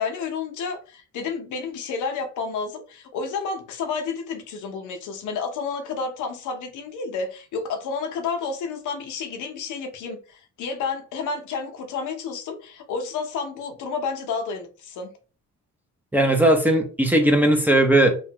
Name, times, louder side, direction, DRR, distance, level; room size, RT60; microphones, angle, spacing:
voice 1, 0.0-15.1, left 5 dB, 80° left, 0.7 m, -30 dB
voice 2, 16.1-18.2, right 1 dB, 5° right, 0.7 m, -18 dB
3.0 x 2.4 x 2.9 m
cardioid pair, 90°, 30 cm